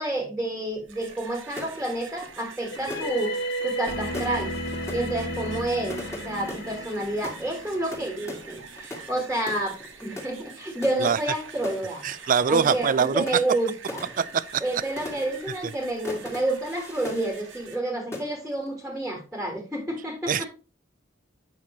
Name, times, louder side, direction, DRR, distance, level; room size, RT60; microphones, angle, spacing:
voice 1, 0.0-3.4 3.6-4.5 4.9-14.0 14.6-20.5, right 1 dB, 5° right, 1.5 m, -29 dB
vibrating buzzer, 0.7-17.8, right 5 dB, 85° right, 1.4 m, -45 dB
sound 1, 1.5-17.9 18.1-18.7, left 1 dB, 15° left, 1.8 m, -41 dB
sound 2, 2.7-8.4, equal, 65° left, 1.4 m, -33 dB
voice 2, 12.0-13.2 14.2-14.6 20.3-20.4, right 6 dB, 45° right, 0.4 m, -23 dB
8.4 x 5.8 x 3.0 m
head